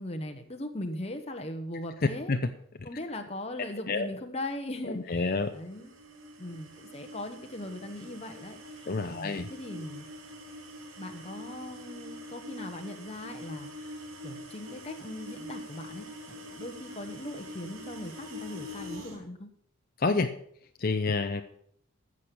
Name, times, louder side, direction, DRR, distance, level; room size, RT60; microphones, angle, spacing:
voice 1, 0.0-2.3 2.8-5.9 6.4-10.0 11.0-14.0 14.2-19.5, left 1 dB, 30° left, 4 dB, 1.1 m, -39 dB
voice 2, 4.8-5.5 8.9-9.5 20.0-20.3 20.8-21.4, left 3 dB, 45° left, 7 dB, 0.7 m, -28 dB
sound 1, 5.3-19.2, equal, 85° right, 2.9 m, -44 dB
15.0 x 6.5 x 6.9 m, 0.65 s
head